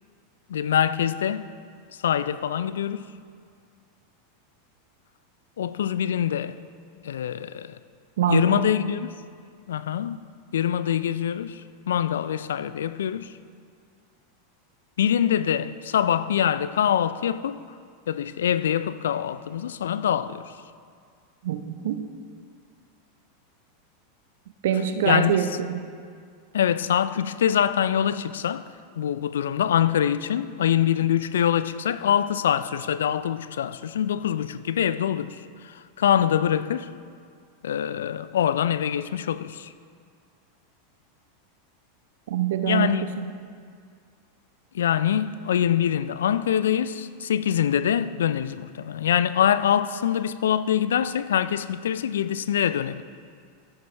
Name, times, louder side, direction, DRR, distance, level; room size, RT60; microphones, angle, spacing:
voice 1, 0.5-1.5 2.0-3.1 5.6-6.6 7.0-7.8 8.3-9.1 9.7-10.2 10.5-13.3 15.0-17.6 18.1-20.5 25.0-25.6 26.5-28.7 29.0-36.9 37.6-39.7 42.7-43.1 44.7-53.0, left 9 dB, 75° left, 0.4 m, -24 dB
voice 2, 8.2-8.7 21.4-22.0 24.6-25.8 42.3-43.2, right 10 dB, 65° right, 0.8 m, -25 dB
13.5 x 11.5 x 3.4 m
hypercardioid pair, 90°, 0 cm